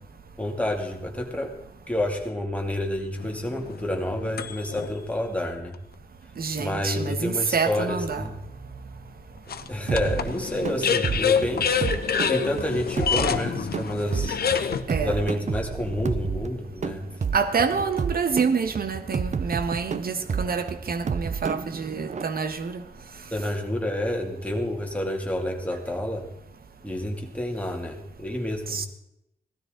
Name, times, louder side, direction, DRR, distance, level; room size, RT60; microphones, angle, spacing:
voice 1, 0.4-1.5 1.9-5.8 6.6-8.4 9.7-11.8 12.3-14.4 15.0-17.0 23.3-26.3 26.8-28.9, left 1 dB, 10° left, 1 dB, 2.6 m, -29 dB
sound 1, 3.2-4.9 5.6-5.7 9.5-14.8, left 7 dB, 90° left, 1.0 m, -27 dB
voice 2, 6.4-8.3 14.9-15.2 17.3-22.8 28.7-28.9, right 5 dB, 75° right, 10 dB, 1.3 m, -27 dB
sound 2, 9.9-22.2, right 6 dB, 50° right, 0.6 m, -31 dB
17.5 x 13.0 x 3.9 m, 0.85 s
wide cardioid pair, 100°, 16 cm